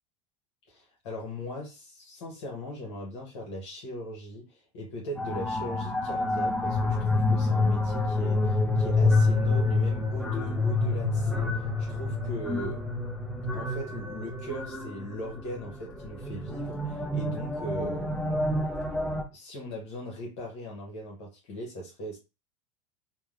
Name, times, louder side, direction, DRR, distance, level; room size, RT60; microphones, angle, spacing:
voice 1, 0.7-12.8 13.5-18.4 19.3-22.2, equal, 65° left, 1.0 m, -39 dB
sound 1, 5.2-19.2, left 2 dB, ahead, 0.6 m, -28 dB
2.8 x 2.1 x 2.4 m
hypercardioid pair, 85°, 15 cm